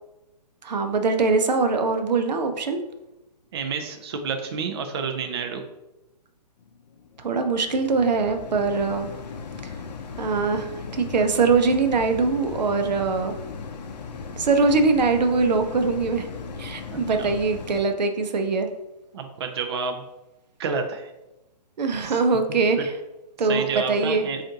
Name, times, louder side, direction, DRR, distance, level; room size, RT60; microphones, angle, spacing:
voice 1, 0.6-2.8 7.2-9.1 10.2-13.4 14.4-16.3 16.6-18.7 21.8-22.9 23.4-24.3, right 4 dB, 90° right, 7 dB, 0.6 m, -22 dB
voice 2, 3.5-5.6 16.9-17.3 19.1-20.0 20.6-21.1 22.0-22.2 22.8-22.9 23.5-24.4, right 5 dB, 40° right, 4 dB, 0.4 m, -29 dB
sound 1, 6.6-17.8, left 5 dB, 75° left, 0.5 m, -37 dB
5.1 x 2.5 x 2.8 m, 0.97 s
hypercardioid pair, 165°, 21 cm